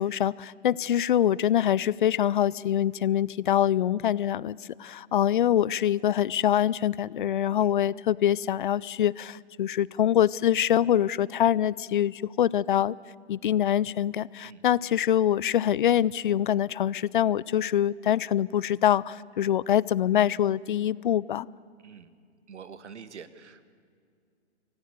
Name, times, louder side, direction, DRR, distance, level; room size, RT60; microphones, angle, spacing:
voice 1, 0.0-13.0 13.3-21.5, left 10 dB, 45° left, 22 dB, 0.5 m, -24 dB
voice 2, 22.5-23.7, right 6 dB, 75° right, 13 dB, 1.7 m, -46 dB
25.5 x 17.0 x 8.2 m, 2.2 s
hypercardioid pair, 140°, 35 cm